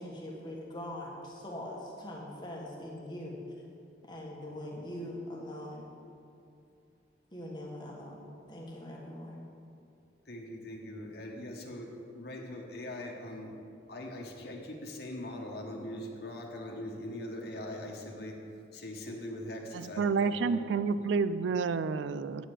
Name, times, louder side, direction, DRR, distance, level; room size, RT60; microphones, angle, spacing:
voice 1, 0.0-3.4 4.0-5.9 7.3-9.4, left 1 dB, 25° left, -2 dB, 1.3 m, -42 dB
voice 2, 10.2-13.6 13.9-18.4 18.7-21.0, left 1 dB, 55° left, 0 dB, 1.2 m, -41 dB
voice 3, 19.7-22.4, right 5 dB, 75° right, 14 dB, 0.3 m, -29 dB
9.2 x 5.0 x 7.5 m, 2.5 s
head